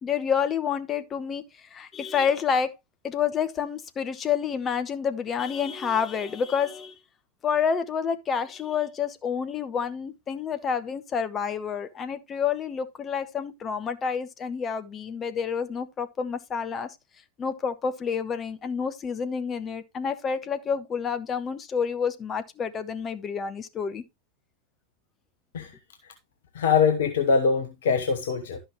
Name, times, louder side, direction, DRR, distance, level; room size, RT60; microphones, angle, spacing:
voice 1, 0.0-1.4 1.7-2.7 3.0-7.0 7.4-16.9 17.4-24.0, left 7 dB, 25° left, 1.0 m, -28 dB
voice 2, 26.5-28.6, left 5 dB, 60° left, 1.1 m, -23 dB
12.0 x 5.8 x 3.0 m
figure-of-eight pair, 90°, 0 cm